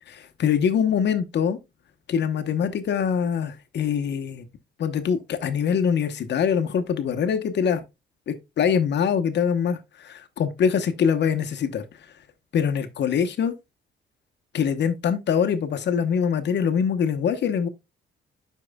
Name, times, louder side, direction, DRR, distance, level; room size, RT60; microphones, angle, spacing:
voice 1, 0.1-1.6 2.1-4.5 4.8-7.8 8.3-11.8 12.5-13.5 14.5-17.7, left 7 dB, 60° left, 1.0 m, -24 dB
11.0 x 4.6 x 2.2 m
cardioid pair, 90°, 20 cm